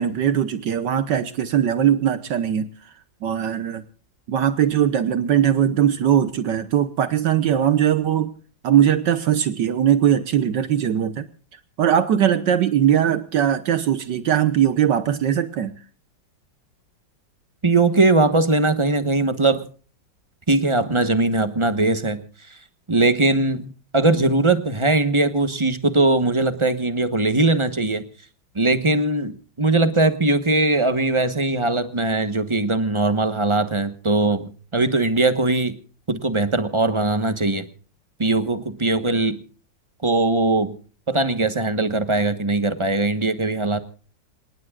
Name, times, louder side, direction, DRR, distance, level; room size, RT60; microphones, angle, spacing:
voice 1, 0.0-2.7 3.2-3.8 4.3-8.3 8.6-11.3 11.8-15.8, right 9 dB, 70° right, 12 dB, 1.6 m, -20 dB
voice 2, 17.6-19.7 20.5-22.2 22.9-28.0 28.5-35.8 36.1-37.7 38.2-39.4 40.0-40.8 41.1-43.8, right 2 dB, 20° right, 10 dB, 0.9 m, -20 dB
27.5 x 19.0 x 2.4 m, 0.39 s
omnidirectional pair, 2.1 m